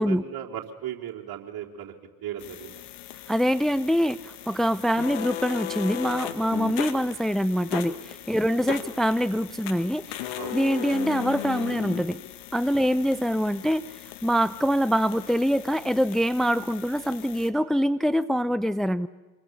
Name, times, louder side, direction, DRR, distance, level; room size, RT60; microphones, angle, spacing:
voice 1, 0.0-1.9 2.2-2.8 8.4-8.8 10.3-10.6 12.8-12.9, right 10 dB, 55° right, 0 dB, 3.9 m, -37 dB
sound 1, 2.4-17.5, left 13 dB, 75° left, 1.9 m, -37 dB
voice 2, 3.3-12.2 12.5-19.1, equal, ahead, 16 dB, 0.7 m, -25 dB
27.0 x 22.5 x 7.2 m, 1.2 s
hypercardioid pair, 50°, 45 cm